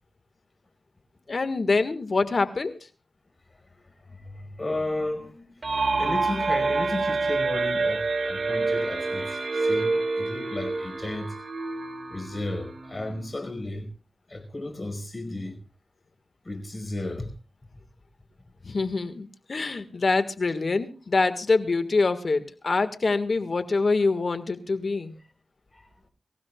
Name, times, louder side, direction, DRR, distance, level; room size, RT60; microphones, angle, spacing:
voice 1, 1.3-2.8 18.6-25.1, left 3 dB, 55° left, 1.7 m, -25 dB
voice 2, 3.8-11.4 12.1-13.9 14.3-15.6 16.4-17.3 25.7-25.9, left 2 dB, 35° left, 5.1 m, -34 dB
sound 1, 5.6-13.2, right 3 dB, 55° right, 2.7 m, -27 dB
25.0 x 15.5 x 2.4 m
cardioid pair, 60°, 0 cm